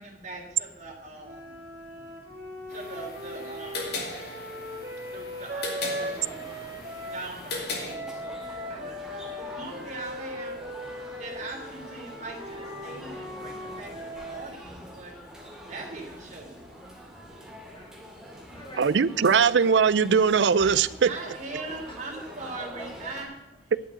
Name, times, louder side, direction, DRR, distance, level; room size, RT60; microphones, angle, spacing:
voice 1, 0.0-1.5 2.7-4.0 5.1-6.5 7.1-8.4 8.7-10.6 11.2-15.1 15.7-16.6 21.1-23.3, right 3 dB, 45° right, 3.3 m, -41 dB
sound 1, 1.2-7.3 7.9-14.5, equal, 65° right, 2.6 m, -39 dB
sound 2, 2.7-7.9, left 3 dB, 65° left, 2.8 m, -37 dB
sound 3, 6.1-23.2, equal, 5° right, 2.3 m, -45 dB
voice 2, 17.4-17.9 18.2-18.9 21.9-22.3 22.6-23.1, equal, 30° left, 3.5 m, -46 dB
voice 3, 18.8-21.1, right 6 dB, 85° right, 0.5 m, -20 dB
11.0 x 6.4 x 8.0 m
head